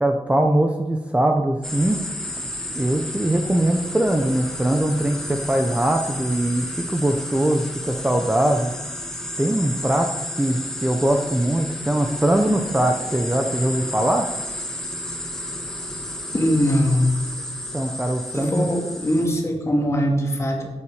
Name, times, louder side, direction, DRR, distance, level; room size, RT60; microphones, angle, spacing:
voice 1, 0.0-2.0 2.7-8.7 9.4-14.3 17.7-18.7, right 1 dB, 10° right, 3 dB, 0.8 m, -21 dB
sound 1, 1.6-19.3, left 1 dB, 5° left, 1.7 m, -32 dB
voice 2, 16.3-17.2 18.3-20.7, equal, 25° left, 1 dB, 2.2 m, -21 dB
12.5 x 8.8 x 4.9 m, 1.1 s
wide cardioid pair, 130°, 11 cm